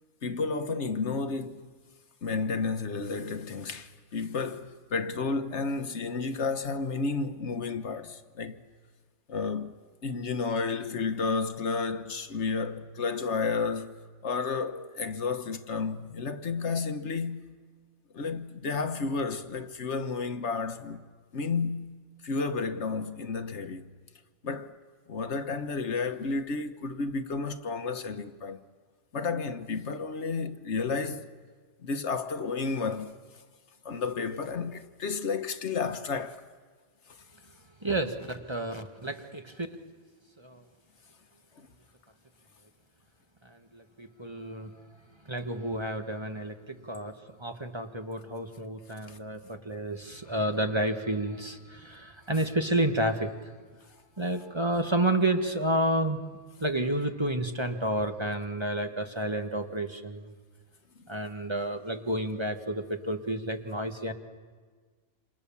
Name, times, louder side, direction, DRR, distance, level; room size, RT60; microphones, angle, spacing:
voice 1, 0.2-1.7 2.2-8.6 9.3-9.8 10.0-14.0 14.2-17.6 18.1-21.1 21.3-23.8 24.4-24.8 25.1-28.6 29.1-31.3 31.8-33.2 33.8-36.4 41.6-41.7 49.1-49.2, left 4 dB, 70° left, 1.4 m, -32 dB
voice 2, 37.8-39.7 40.4-40.6 43.4-44.7 45.2-53.3 54.2-56.2 56.6-60.3 61.1-64.1, right 1 dB, 25° right, 1.6 m, -30 dB
28.5 x 27.5 x 7.2 m
omnidirectional pair, 1.2 m